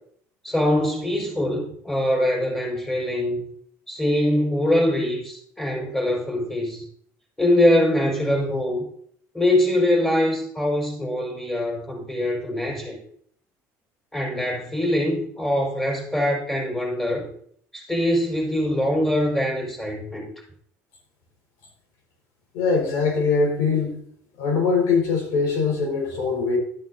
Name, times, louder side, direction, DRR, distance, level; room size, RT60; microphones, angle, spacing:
voice 1, 0.4-3.5 3.9-6.8 7.4-8.8 9.3-13.0 14.1-17.3 17.7-20.3, left 1 dB, 10° left, -1 dB, 5.1 m, -23 dB
voice 2, 22.5-24.0 24.4-26.6, left 4 dB, 85° left, 0 dB, 5.2 m, -22 dB
13.0 x 11.0 x 2.8 m, 0.63 s
cardioid pair, 125°, 6 cm